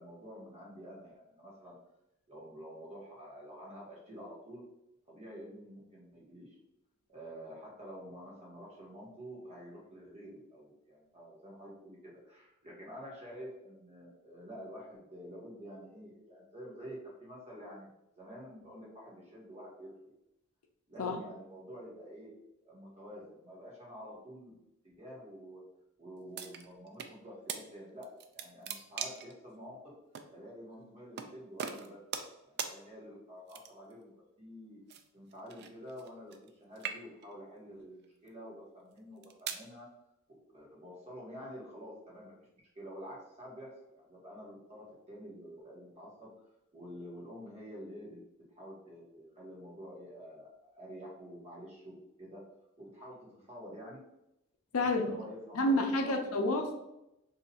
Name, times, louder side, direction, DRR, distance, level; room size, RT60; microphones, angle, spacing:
voice 1, 0.0-1.7 2.3-4.6 5.1-6.6 7.1-17.9 18.2-20.1 20.9-24.5 24.8-25.6 26.0-29.8 30.3-32.0 32.5-34.8 35.1-39.9 40.5-42.3 42.7-46.3 46.7-48.2 48.5-52.4 52.8-54.0 54.8-56.4, equal, 30° right, -5 dB, 1.2 m, -49 dB
sound 1, 26.3-27.1 27.5-27.6 28.0-29.3 30.1-30.3 31.2-31.3 31.6-32.3 32.6-32.7 33.5-33.9 34.9-36.5 36.7-37.3 38.0-38.3 39.0-39.7, right 7 dB, 50° right, 0.3 m, -40 dB
voice 2, 55.5-56.7, left 1 dB, 75° left, 4 dB, 0.5 m, -29 dB
2.8 x 2.4 x 4.1 m, 0.87 s
head